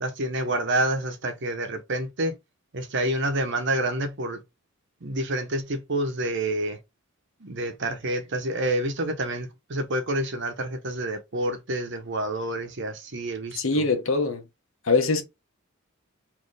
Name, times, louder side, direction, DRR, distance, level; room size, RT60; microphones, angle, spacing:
voice 1, 0.0-2.4 2.7-4.4 5.0-6.8 7.4-13.9, right 1 dB, 60° right, 1.0 m, -28 dB
voice 2, 13.6-14.4 14.9-15.2, left 3 dB, 70° left, 1.0 m, -22 dB
4.3 x 2.9 x 3.4 m
head